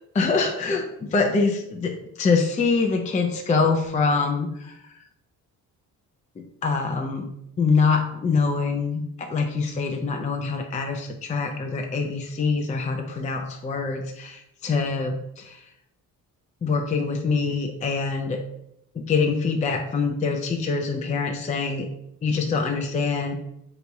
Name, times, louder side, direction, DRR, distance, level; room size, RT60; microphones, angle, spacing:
voice 1, 0.1-4.8 6.4-7.3 7.6-15.6 16.6-18.4 19.0-21.9 22.2-23.4, left 4 dB, 20° left, 3 dB, 0.4 m, -24 dB
3.4 x 3.0 x 4.0 m, 0.79 s
cardioid pair, 110°, 37 cm